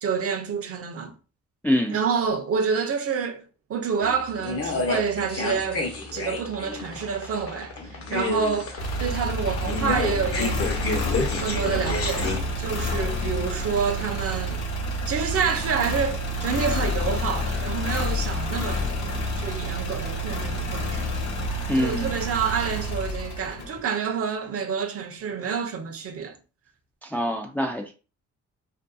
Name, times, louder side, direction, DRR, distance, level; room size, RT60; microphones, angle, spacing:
voice 1, 0.0-1.1 1.9-3.4 3.7-5.9 6.1-10.7 11.4-14.6 15.1-21.2 21.7-26.3, right 6 dB, 50° right, 0.6 m, -28 dB
voice 2, 1.6-2.0 21.7-22.1 27.0-27.9, left 1 dB, 5° left, 0.3 m, -24 dB
sound 1, 4.0-12.4, left 3 dB, 50° left, 0.8 m, -30 dB
sound 2, 8.8-23.8, equal, 70° left, 1.0 m, -29 dB
2.6 x 2.2 x 2.5 m
cardioid pair, 90°, 30 cm